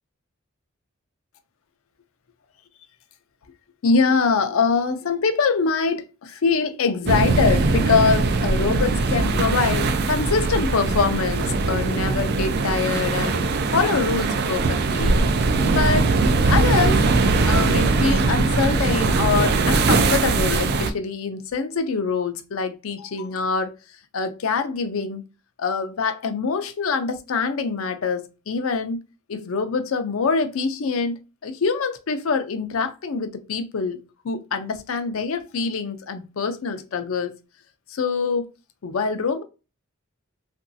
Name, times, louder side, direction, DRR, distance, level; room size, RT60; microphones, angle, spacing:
voice 1, 3.8-15.2 15.7-16.1 16.4-17.1 17.4-23.7 24.1-25.2 25.6-29.0 29.3-37.4 37.9-38.5 38.8-39.4, left 4 dB, 85° left, 0.5 m, -24 dB
sound 1, 7.1-20.9, right 3 dB, 50° right, 0.3 m, -21 dB
3.0 x 2.5 x 2.6 m
head